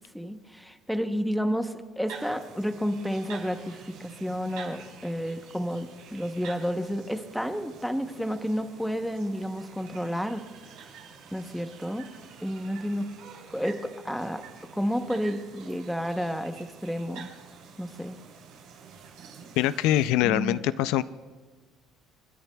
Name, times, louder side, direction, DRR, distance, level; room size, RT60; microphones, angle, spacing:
voice 1, 0.1-10.4 11.3-12.0 12.4-13.1 13.5-14.4 14.7-17.3 17.8-18.2 20.2-20.6, equal, ahead, 8 dB, 0.8 m, -31 dB
sound 1, 2.1-20.1, right 6 dB, 80° right, 3.5 m, -48 dB
voice 2, 19.6-21.0, left 13 dB, 85° left, 15 dB, 0.3 m, -23 dB
30.0 x 10.0 x 2.3 m, 1.4 s
cardioid pair, 140°, 0 cm